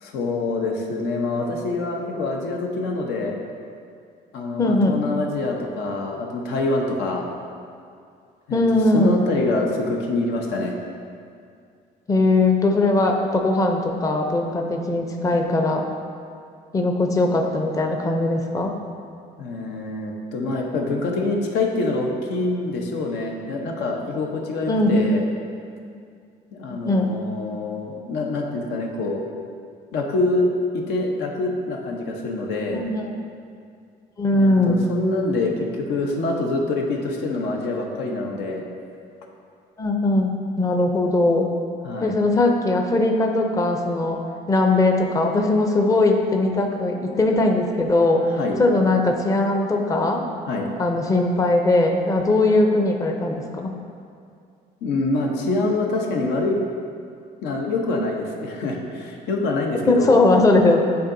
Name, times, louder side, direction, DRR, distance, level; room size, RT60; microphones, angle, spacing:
voice 1, 0.0-3.4 4.3-7.2 8.5-8.6 8.9-10.7 19.4-25.2 26.5-29.2 29.9-30.5 30.9-32.8 34.3-38.6 41.8-42.1 48.4-48.6 50.5-50.7 54.8-56.6 57.4-60.2, left 2 dB, 85° left, 0 dB, 0.8 m, -25 dB
voice 2, 4.6-5.0 8.5-9.3 12.1-15.8 16.7-18.7 24.7-25.1 26.7-27.2 32.7-33.2 34.2-34.8 39.8-41.5 42.0-44.2 44.5-48.2 48.6-50.2 50.8-53.8 59.9-60.8, left 2 dB, 20° left, 3 dB, 0.5 m, -20 dB
9.3 x 3.9 x 2.6 m, 2.3 s
cardioid pair, 110°, 17 cm